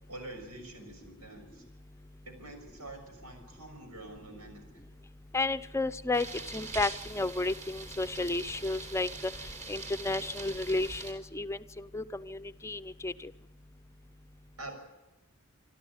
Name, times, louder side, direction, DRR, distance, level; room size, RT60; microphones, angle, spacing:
voice 1, 0.1-1.6 2.2-4.9 14.6-14.7, right 2 dB, 90° right, 5 dB, 6.4 m, -46 dB
voice 2, 5.3-9.3 9.7-11.6 11.9-13.3, left 2 dB, 10° left, 13 dB, 0.7 m, -32 dB
sound 1, 6.1-11.1, right 3 dB, 35° right, 3.6 m, -43 dB
26.0 x 13.0 x 9.5 m, 1.0 s
head